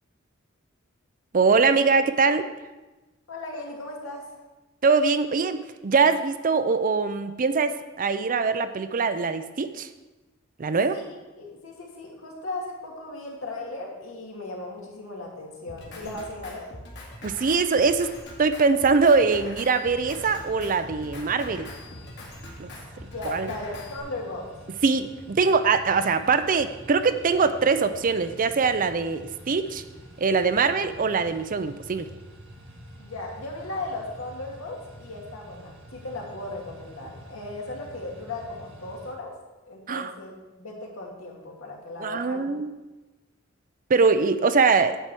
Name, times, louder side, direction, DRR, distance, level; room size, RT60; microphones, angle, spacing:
voice 1, 1.3-2.5 4.8-7.7 8.0-9.9 10.6-11.0 17.2-18.1 18.4-21.7 22.6-22.7 23.2-23.5 24.8-29.8 30.2-32.1 39.9-40.1 42.0-42.7 43.9-45.0, right 4 dB, 40° right, 11 dB, 0.5 m, -22 dB
voice 2, 3.3-4.4 10.9-16.7 23.1-24.5 33.0-39.3 39.6-42.4, left 2 dB, 80° left, -2 dB, 2.3 m, -37 dB
Drum kit, 15.7-24.0, left 1 dB, 55° left, 2.2 m, -43 dB
sound 1, 19.8-39.1, equal, 65° right, 1.9 m, -47 dB
9.8 x 4.7 x 7.6 m, 1.1 s
head